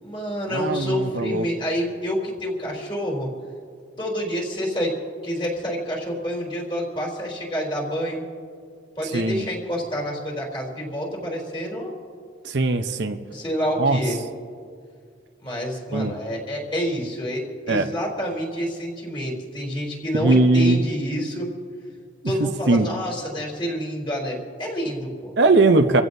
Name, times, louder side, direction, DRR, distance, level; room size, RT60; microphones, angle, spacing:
voice 1, 0.0-3.3 4.0-4.9 5.2-8.2 9.0-11.9 13.1-14.2 15.4-21.5 22.2-25.3, equal, 25° left, -2 dB, 3.6 m, -28 dB
voice 2, 0.5-1.5 9.0-9.5 12.4-13.2 13.8-14.0 15.9-16.1 17.7-17.9 20.1-20.8 22.4-22.9 25.4-26.0, right 2 dB, 65° right, 7 dB, 0.8 m, -20 dB
27.5 x 15.5 x 2.7 m, 2.2 s
head